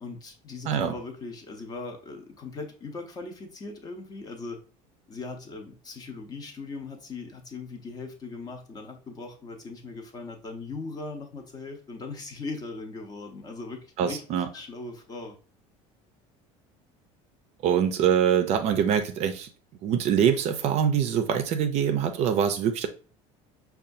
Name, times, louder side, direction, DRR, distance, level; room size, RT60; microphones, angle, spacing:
voice 1, 0.0-4.6 5.1-15.4, left 3 dB, 25° left, 0.7 m, -39 dB
voice 2, 14.0-14.5 17.6-19.5 19.8-22.9, right 8 dB, 45° right, 0.4 m, -24 dB
5.4 x 2.3 x 2.6 m
cardioid pair, 145°, 15 cm